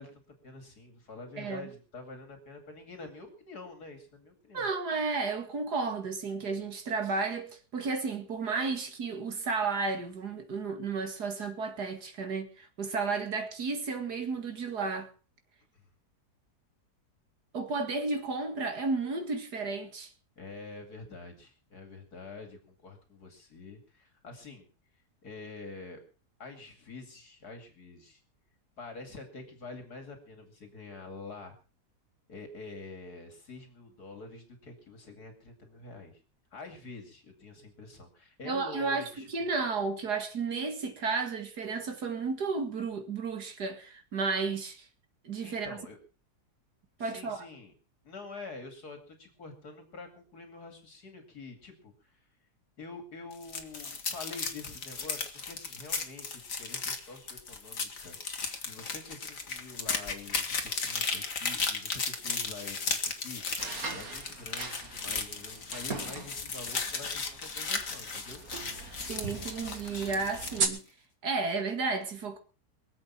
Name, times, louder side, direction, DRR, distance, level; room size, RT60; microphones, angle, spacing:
voice 1, 0.0-4.7 15.7-15.8 20.4-24.7 25.2-26.0 26.4-28.2 28.8-31.6 32.3-36.2 36.5-39.3 45.4-46.0 47.0-47.7 48.0-52.3 52.8-68.4, left 3 dB, 70° left, 3.0 m, -46 dB
voice 2, 1.4-1.7 4.5-15.1 17.5-20.1 38.4-44.9 45.2-45.8 47.0-47.5 69.1-70.8 71.2-72.4, right 4 dB, 75° right, 2.7 m, -33 dB
sound 1, 53.3-70.7, left 4 dB, 55° left, 2.2 m, -35 dB
sound 2, 63.6-70.7, right 4 dB, 60° right, 2.6 m, -39 dB
23.5 x 8.0 x 5.8 m
omnidirectional pair, 1.7 m